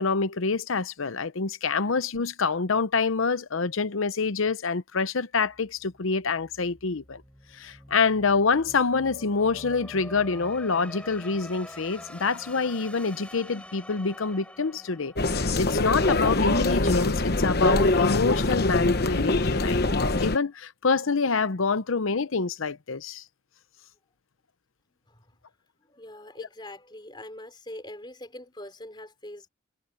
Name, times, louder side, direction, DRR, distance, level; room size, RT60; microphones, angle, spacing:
voice 1, 0.0-7.2 7.5-23.2 26.4-26.5, left 4 dB, 75° left, 0.8 m, -26 dB
sound 1, 5.4-16.4, left 1 dB, 5° left, 5.4 m, -46 dB
sound 2, 15.2-20.4, left 2 dB, 50° left, 1.1 m, -23 dB
voice 2, 25.9-29.5, left 1 dB, 20° left, 4.0 m, -43 dB
head